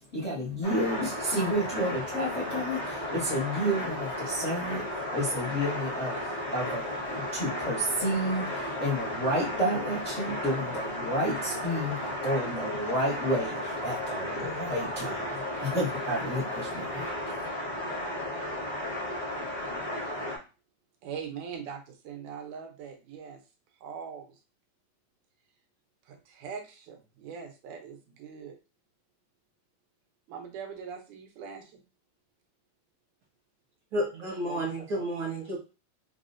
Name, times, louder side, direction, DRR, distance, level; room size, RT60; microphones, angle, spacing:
voice 1, 0.1-4.8 5.1-17.3, equal, 75° left, -9 dB, 0.6 m, -31 dB
sound 1, 0.6-20.4, left 1 dB, 45° left, 0.8 m, -34 dB
voice 2, 21.0-23.4 23.8-24.4 26.1-28.6 30.3-31.8 34.5-35.1, right 6 dB, 85° right, 3 dB, 2.2 m, -42 dB
voice 3, 33.9-35.6, right 1 dB, 65° right, -2 dB, 1.3 m, -31 dB
5.8 x 2.1 x 2.5 m, 0.31 s
omnidirectional pair, 3.5 m